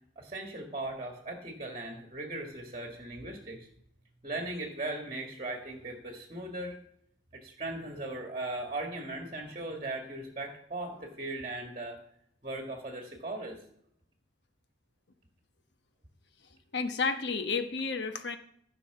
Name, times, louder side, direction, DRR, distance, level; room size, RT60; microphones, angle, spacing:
voice 1, 0.2-3.7 4.2-6.8 7.3-12.0 12.4-13.6, right 2 dB, 30° right, 3 dB, 1.8 m, -38 dB
voice 2, 16.7-18.4, left 4 dB, 65° left, 8 dB, 1.2 m, -31 dB
14.5 x 5.7 x 6.8 m, 0.69 s
head